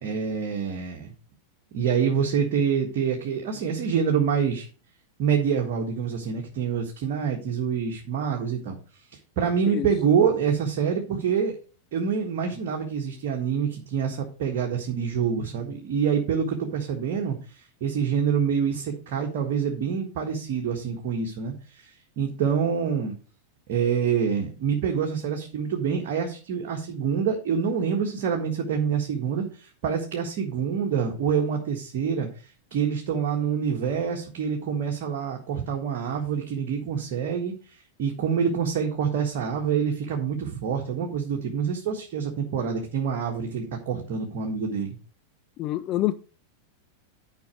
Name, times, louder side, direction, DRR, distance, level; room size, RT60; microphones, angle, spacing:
voice 1, 0.0-1.1 1.7-4.7 5.2-8.8 9.1-11.5 11.9-23.1 23.7-32.3 32.7-45.0, right 7 dB, 45° right, 1.7 m, -26 dB
voice 2, 45.6-46.1, left 15 dB, 35° left, 0.5 m, -26 dB
10.5 x 5.5 x 4.9 m
figure-of-eight pair, 90°, 0 cm